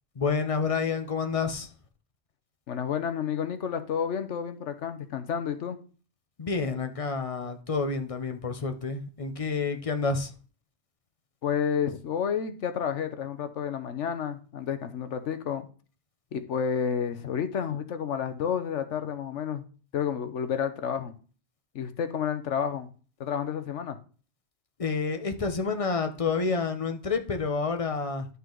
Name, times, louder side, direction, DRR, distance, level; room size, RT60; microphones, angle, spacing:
voice 1, 0.2-1.7 6.4-10.3 24.8-28.3, left 4 dB, 35° left, 7 dB, 0.7 m, -29 dB
voice 2, 2.7-5.8 11.4-15.7 16.3-19.6 19.9-21.1 21.7-22.9 23.2-24.0, left 7 dB, 90° left, 10 dB, 1.2 m, -30 dB
11.0 x 5.5 x 3.8 m, 0.39 s
omnidirectional pair, 1.2 m